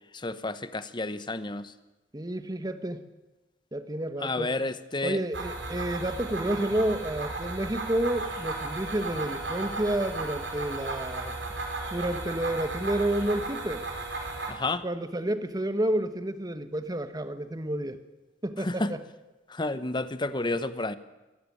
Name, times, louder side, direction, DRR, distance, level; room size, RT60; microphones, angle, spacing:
voice 1, 0.2-1.7 4.2-5.2 14.5-14.8 18.8-18.9 19.6-20.9, left 2 dB, 25° left, 13 dB, 1.0 m, -30 dB
voice 2, 2.1-3.0 3.7-4.5 5.0-11.3 11.9-13.8 14.8-18.0 18.4-19.0, right 1 dB, 20° right, 10 dB, 1.2 m, -30 dB
sound 1, 5.3-14.5, right 3 dB, 65° right, 5.3 m, -35 dB
23.5 x 14.0 x 9.8 m, 1.1 s
head